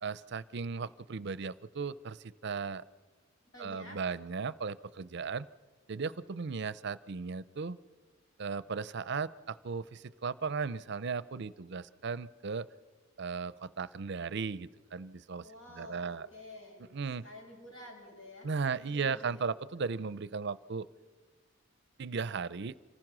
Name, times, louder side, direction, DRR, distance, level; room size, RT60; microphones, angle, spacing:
voice 1, 0.0-2.8 3.6-5.5 5.9-7.8 8.4-12.7 13.2-16.3 16.9-17.3 18.4-20.9 22.0-22.8, right 5 dB, 55° right, 17 dB, 0.5 m, -36 dB
voice 2, 3.5-4.0 15.4-16.9 17.2-18.5 18.8-19.4, left 1 dB, 70° left, 0 dB, 7.5 m, -50 dB
26.5 x 19.0 x 6.1 m, 1.4 s
head